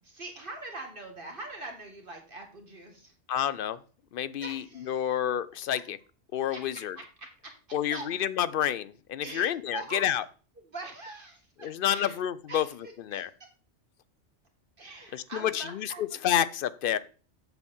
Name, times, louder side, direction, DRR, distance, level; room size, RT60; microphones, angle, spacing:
voice 1, 0.0-3.1 4.4-5.2 6.5-8.0 9.2-10.0 10.6-12.2 12.5-13.5 14.8-16.4 16.8-17.0, right 2 dB, 45° right, 2 dB, 1.9 m, -43 dB
voice 2, 3.3-3.8 4.1-6.0 6.3-7.0 7.7-10.2 11.6-12.7 13.1-13.3 15.1-15.9 16.2-17.0, left 10 dB, 60° left, 16 dB, 0.6 m, -29 dB
7.8 x 4.4 x 7.1 m, 0.37 s
omnidirectional pair, 1.2 m